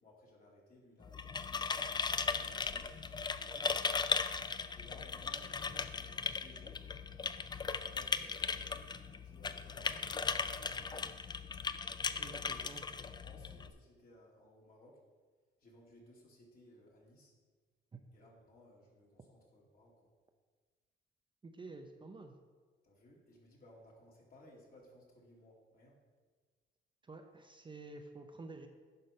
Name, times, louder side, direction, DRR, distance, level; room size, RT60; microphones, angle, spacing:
voice 1, 0.0-1.7 2.3-3.8 4.7-6.8 7.6-10.9 12.0-15.0 15.6-17.3 18.1-20.1 22.8-26.0, left 1 dB, 45° left, -3 dB, 2.7 m, -60 dB
sound 1, 1.0-13.7, left 5 dB, 20° left, 0.4 m, -38 dB
voice 2, 12.2-12.8 17.9-18.0 21.4-22.3 27.0-28.7, right 3 dB, 25° right, 5 dB, 0.7 m, -50 dB
11.0 x 4.0 x 5.2 m, 1.4 s
cardioid pair, 90°, 20 cm